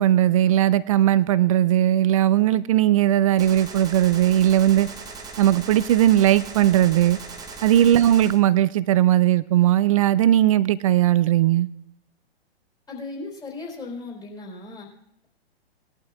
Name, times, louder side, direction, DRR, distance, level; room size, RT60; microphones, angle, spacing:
voice 1, 0.0-4.9 5.4-7.2 7.6-11.7, right 12 dB, 35° right, 17 dB, 0.4 m, -18 dB
Gunshot gunfire, 3.4-8.4, right 4 dB, 10° right, 1.0 m, -39 dB
voice 2, 12.9-14.9, left 3 dB, 15° left, -1 dB, 3.4 m, -36 dB
20.0 x 11.5 x 2.3 m, 0.84 s
figure-of-eight pair, 115°, 31 cm